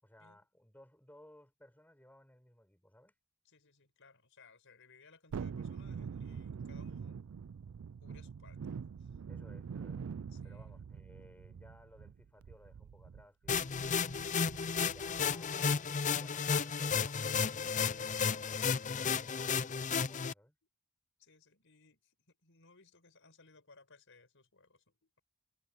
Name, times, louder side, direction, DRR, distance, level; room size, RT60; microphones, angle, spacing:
voice 1, 0.0-3.1 9.3-10.1 10.4-14.1 14.9-20.6, left 1 dB, 10° left, 6.0 m, -60 dB
voice 2, 3.4-7.2 8.0-9.2 10.3-11.0 21.2-25.2, left 4 dB, 60° left, 6.1 m, -63 dB
Thunderstorm, 5.3-15.5 15.9-16.0, right 6 dB, 70° right, 0.4 m, -45 dB
sound 1, 13.5-20.3, left 6 dB, 35° left, 0.5 m, -33 dB
head